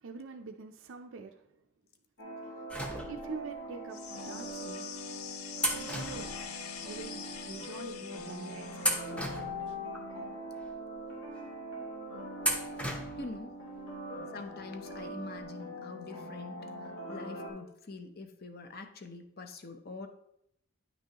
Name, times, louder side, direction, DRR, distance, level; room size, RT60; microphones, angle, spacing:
voice 1, 0.0-1.5 2.8-4.9 5.7-6.2 6.8-8.7 9.7-9.8 14.1-14.3, right 4 dB, 65° right, 4 dB, 0.5 m, -45 dB
sound 1, 2.2-17.5, equal, 70° left, 2.2 m, -42 dB
sound 2, 2.7-3.5 4.4-4.5 5.6-7.0 7.3-7.4 8.1-8.4 8.8-10.1 10.6-10.7 12.4-13.4 13.7-13.8 14.9-15.0 15.3-15.4, equal, 5° left, 0.7 m, -35 dB
sound 3, 3.9-9.1, left 8 dB, 85° left, 0.7 m, -45 dB
voice 2, 13.2-13.7 14.3-16.7 17.1-20.1, left 3 dB, 45° left, 7 dB, 0.7 m, -45 dB
9.5 x 6.0 x 2.9 m, 0.78 s
head